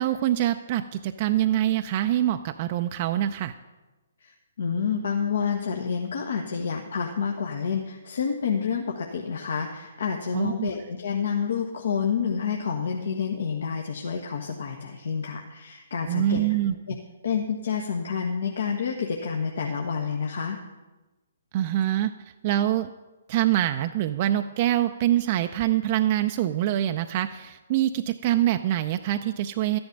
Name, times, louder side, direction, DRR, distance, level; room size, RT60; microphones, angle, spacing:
voice 1, 0.0-3.5 10.3-10.7 16.1-16.7 21.5-22.1 22.4-22.9 23.3-29.8, right 13 dB, 40° right, 8 dB, 0.5 m, -24 dB
voice 2, 4.2-16.5 16.9-17.0 17.2-20.6, left 6 dB, 70° left, 1 dB, 1.3 m, -28 dB
12.5 x 10.5 x 5.2 m, 1.2 s
figure-of-eight pair, 135°, 0 cm